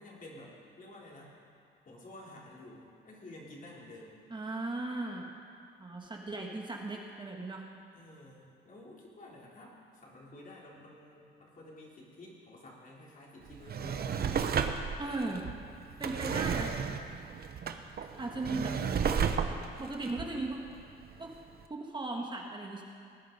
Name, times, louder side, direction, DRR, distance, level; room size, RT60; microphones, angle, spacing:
voice 1, 0.0-1.3 1.9-4.2 7.9-14.3, left 1 dB, 45° left, -4 dB, 3.7 m, -51 dB
voice 2, 4.3-5.3 5.8-7.7 15.0-15.5 16.0-16.7 18.2-18.8 19.1-19.3 19.8-20.6 21.2-21.4 21.7-22.8, right 2 dB, 25° right, 0 dB, 1.5 m, -37 dB
Drawer open or close, 13.5-21.2 21.6-21.7, right 6 dB, 50° right, 0.9 m, -33 dB
19.5 x 9.2 x 5.2 m, 2.4 s
cardioid pair, 90°, 20 cm